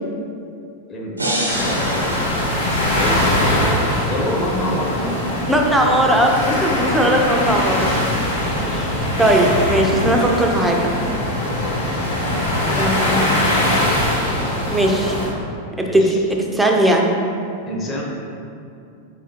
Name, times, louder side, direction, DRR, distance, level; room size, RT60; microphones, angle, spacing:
voice 1, 0.9-3.4 4.1-5.4 8.6-9.0 11.4-11.8 15.8-16.2 17.7-18.0, equal, 25° left, -3 dB, 0.7 m, -28 dB
sound 1, 1.2-3.3, right 1 dB, 85° right, 0.7 m, -27 dB
sound 2, 1.5-15.3, left 1 dB, 70° left, 1.2 m, -21 dB
voice 2, 5.5-8.0 9.2-11.0 12.8-13.3 14.7-15.2 15.8-16.1 16.5-17.1, right 1 dB, 5° right, 1 dB, 0.4 m, -18 dB
sound 3, 8.9-11.4 12.0-12.1 12.7-12.8, left 1 dB, 85° left, 0.5 m, -29 dB
4.7 x 3.5 x 2.7 m, 2.5 s
figure-of-eight pair, 90°, 0 cm